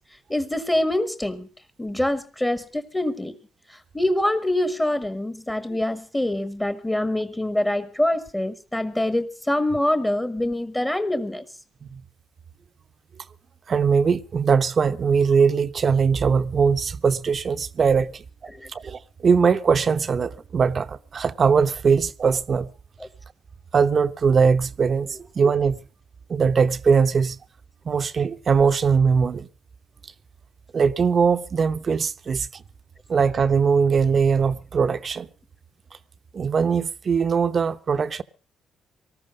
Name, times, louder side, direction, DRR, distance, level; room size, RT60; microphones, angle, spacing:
voice 1, 0.3-1.5 1.8-3.3 3.7-11.4 18.5-18.7 23.0-23.1, left 1 dB, 10° left, 1.2 m, -25 dB
voice 2, 13.7-18.2 18.7-22.7 23.7-25.8 26.3-27.4 27.8-29.5 30.7-32.6 33.1-35.3 36.3-38.2, right 5 dB, 45° right, 0.8 m, -21 dB
19.0 x 13.5 x 5.1 m
cardioid pair, 90°, 0 cm